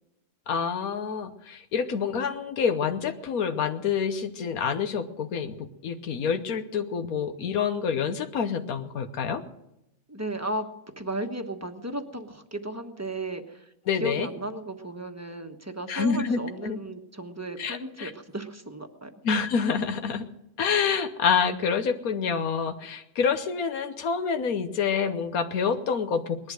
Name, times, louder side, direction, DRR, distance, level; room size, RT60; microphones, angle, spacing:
voice 1, 0.5-9.4 13.9-14.3 15.9-16.8 17.6-18.1 19.2-20.3 20.6-26.5, left 6 dB, 85° left, 8 dB, 1.4 m, -27 dB
voice 2, 10.1-10.7 11.0-13.7 14.0-19.1, right 1 dB, 10° right, 6 dB, 1.1 m, -35 dB
19.5 x 11.5 x 6.4 m, 0.85 s
omnidirectional pair, 1.5 m